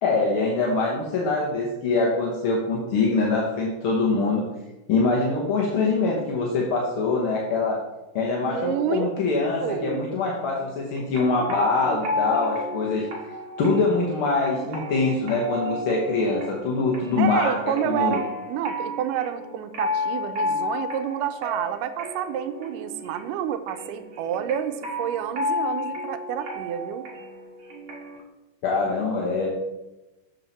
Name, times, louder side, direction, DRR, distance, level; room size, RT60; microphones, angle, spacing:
voice 1, 0.0-4.4 4.9-7.8 8.1-13.1 13.6-17.6 17.8-18.2 28.6-29.5, left 3 dB, 60° left, -2 dB, 1.4 m, -24 dB
voice 2, 8.5-9.1 9.6-10.1 11.4-12.0 17.2-27.1, right 10 dB, 90° right, 9 dB, 2.2 m, -29 dB
sound 1, 10.5-28.2, left 2 dB, 45° right, 2.2 m, -33 dB
7.5 x 7.2 x 4.1 m, 0.99 s
omnidirectional pair, 3.7 m